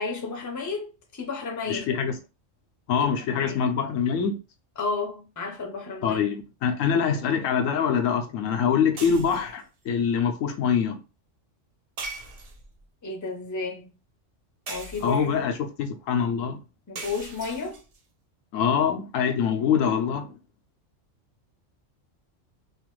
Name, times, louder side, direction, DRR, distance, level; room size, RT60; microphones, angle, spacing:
voice 1, 0.0-1.9 3.4-3.6 4.8-6.2 13.0-13.9 14.7-15.4 16.9-17.8, left 4 dB, 20° left, 0.5 m, -32 dB
voice 2, 1.7-2.2 2.9-4.4 6.0-11.0 15.0-16.6 18.5-20.3, left 7 dB, 85° left, 1.0 m, -24 dB
sound 1, 9.0-9.6 12.0-12.8 14.7-15.4 17.0-18.0, right 3 dB, 60° right, 0.4 m, -39 dB
3.0 x 2.4 x 3.0 m
omnidirectional pair, 1.3 m